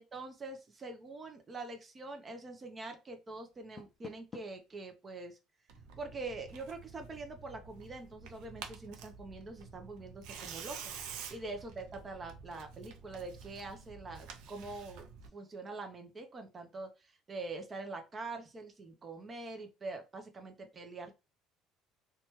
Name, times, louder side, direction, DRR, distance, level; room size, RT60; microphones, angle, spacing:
voice 1, 0.0-5.4 6.0-15.0 15.3-21.1, right 3 dB, 30° right, 5 dB, 0.6 m, -44 dB
Door, 3.5-4.7, left 6 dB, 30° left, 0.3 m, -51 dB
Tearing, 5.7-15.3, right 6 dB, 75° right, 0.5 m, -49 dB
2.8 x 2.3 x 3.0 m, 0.28 s
supercardioid pair, 105°, 0 cm